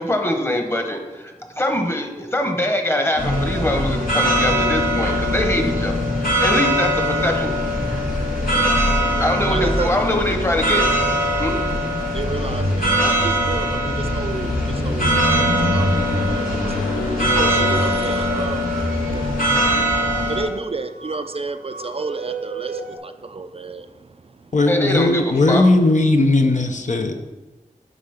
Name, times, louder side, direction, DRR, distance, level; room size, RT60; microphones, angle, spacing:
voice 1, 0.0-5.9 6.4-7.5 9.2-10.8 11.4-11.6 24.7-25.6, left 1 dB, 15° left, 4 dB, 1.2 m, -23 dB
sound 1, 3.2-20.4, equal, 85° left, 2.6 m, -21 dB
voice 2, 9.5-9.9 12.1-15.2 15.6-24.1 24.4-24.5, right 3 dB, 40° right, 8 dB, 0.4 m, -31 dB
sound 2, 16.4-23.0, right 3 dB, 75° right, 0.9 m, -35 dB
voice 3, 24.5-27.3, left 2 dB, 55° left, 4 dB, 0.7 m, -17 dB
8.2 x 3.8 x 5.8 m, 1.2 s
wide cardioid pair, 55°, 15 cm